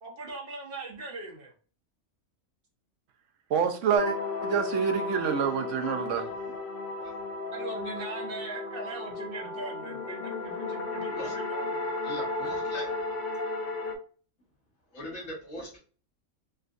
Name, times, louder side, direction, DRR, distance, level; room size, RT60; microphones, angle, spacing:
voice 1, 0.0-1.5 7.5-11.9, right 2 dB, 45° right, 1.0 m, -40 dB
voice 2, 3.5-4.2 4.4-6.3, right 7 dB, 70° right, 0.8 m, -27 dB
sound 1, 3.9-13.9, left 3 dB, 55° left, 0.5 m, -34 dB
voice 3, 11.1-11.4 12.0-12.9 14.9-15.8, equal, 75° left, 2.2 m, -40 dB
4.6 x 2.2 x 2.5 m
omnidirectional pair, 1.4 m